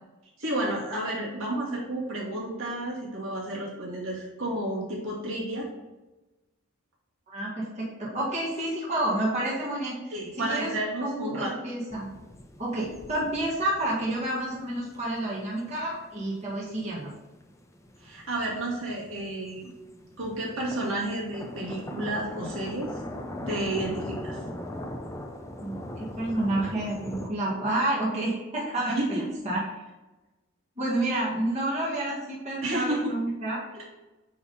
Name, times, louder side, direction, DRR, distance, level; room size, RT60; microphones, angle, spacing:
voice 1, 0.4-5.7 10.1-11.5 18.0-19.7 20.2-22.9 23.5-24.4 29.0-29.2 32.6-33.0 33.7-33.9, right 1 dB, 65° right, -4 dB, 2.3 m, -31 dB
voice 2, 7.3-10.7 11.0-12.1 12.6-17.1 25.6-29.2 29.4-29.6 30.8-33.6, right 1 dB, 30° right, -7 dB, 1.9 m, -29 dB
sound 1, 11.9-27.3, left 1 dB, 15° left, 0.6 m, -41 dB
9.3 x 3.6 x 4.2 m, 1.1 s
head